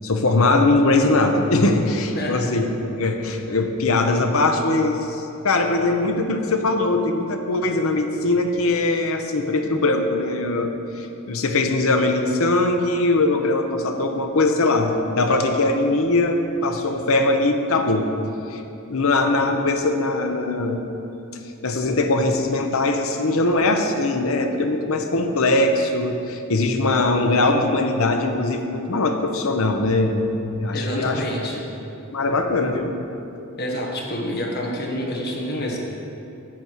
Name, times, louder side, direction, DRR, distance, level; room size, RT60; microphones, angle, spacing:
voice 1, 0.0-18.1 18.5-18.6 18.9-20.9 21.6-31.2 32.1-33.0, left 2 dB, 70° left, 5 dB, 0.8 m, -21 dB
voice 2, 30.7-31.6 33.6-35.8, left 1 dB, 50° left, -1 dB, 1.4 m, -28 dB
10.5 x 8.1 x 4.6 m, 2.9 s
head